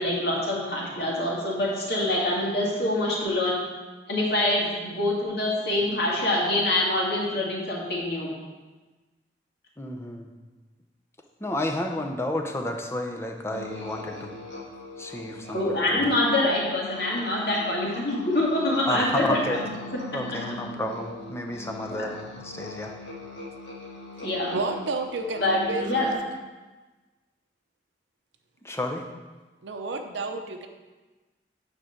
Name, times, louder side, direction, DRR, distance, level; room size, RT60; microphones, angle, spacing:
voice 1, 0.0-3.6 4.1-8.3 15.5-19.6 21.9-22.1 24.2-24.6 25.4-26.1, left 1 dB, 60° left, -4 dB, 2.2 m, -25 dB
voice 2, 9.8-10.3 11.4-14.3 15.0-16.1 18.9-19.6 20.1-22.9 28.6-29.0, left 1 dB, 15° left, 3 dB, 0.7 m, -31 dB
sound 1, 13.5-26.2, left 2 dB, 90° left, 1.7 m, -40 dB
voice 3, 24.5-26.1 29.6-30.7, right 3 dB, 85° right, 5 dB, 0.7 m, -31 dB
9.5 x 3.7 x 6.6 m, 1.2 s
head